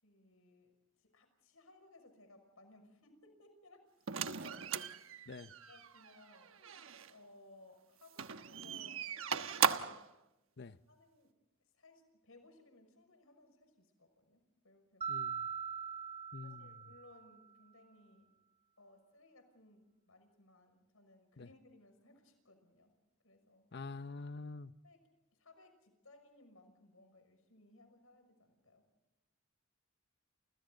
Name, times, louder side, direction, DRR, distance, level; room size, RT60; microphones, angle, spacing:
voice 1, 0.0-4.8 5.7-6.6 7.1-10.1 10.9-11.3 11.8-15.2 16.4-18.3 18.8-22.9 23.2-23.7 24.8-25.0 25.3-28.8, left 2 dB, 80° left, 6.0 m, -62 dB
sound 1, 4.1-7.1 8.1-10.1, right 7 dB, 70° right, 1.1 m, -38 dB
Mallet percussion, 15.0-17.4, right 7 dB, 30° right, 1.8 m, -42 dB
voice 2, 15.1-15.4 16.3-16.7 21.4-21.5 23.7-24.7, left 3 dB, 50° left, 0.7 m, -46 dB
30.0 x 29.5 x 3.9 m
head